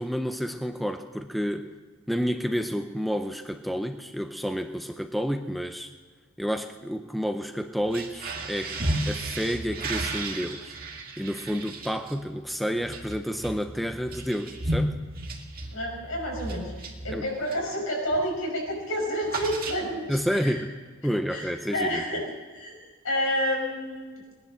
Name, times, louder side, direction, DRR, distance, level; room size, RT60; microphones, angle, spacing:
voice 1, 0.0-1.7 2.1-5.9 6.4-10.8 11.2-15.0 17.1-17.2 20.1-20.7 21.0-22.0, equal, ahead, 7 dB, 0.6 m, -30 dB
sound 1, 7.9-17.7 18.1-18.4 18.6-20.2, right 2 dB, 45° right, 1.8 m, -34 dB
voice 2, 15.7-20.6 21.3-22.2 22.5-22.8 23.0-24.2, equal, 70° left, 0 dB, 5.6 m, -29 dB
19.5 x 11.0 x 6.5 m, 1.4 s
head